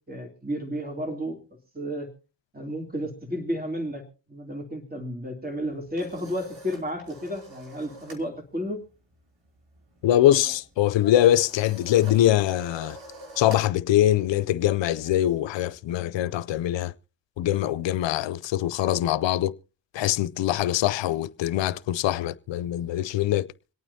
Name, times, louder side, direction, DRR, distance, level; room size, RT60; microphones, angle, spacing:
voice 1, 0.1-1.4 1.7-2.1 2.5-4.0 4.3-8.8, equal, 20° right, 3.0 m, -32 dB
sound 1, 5.6-8.3 8.6-8.9 9.1-15.8, right 1 dB, 75° right, 3.3 m, -47 dB
voice 2, 10.0-13.0 13.4-16.9 17.4-19.6 19.9-23.5, left 13 dB, 75° left, 0.6 m, -23 dB
26.0 x 9.0 x 2.7 m
supercardioid pair, 45°, 45 cm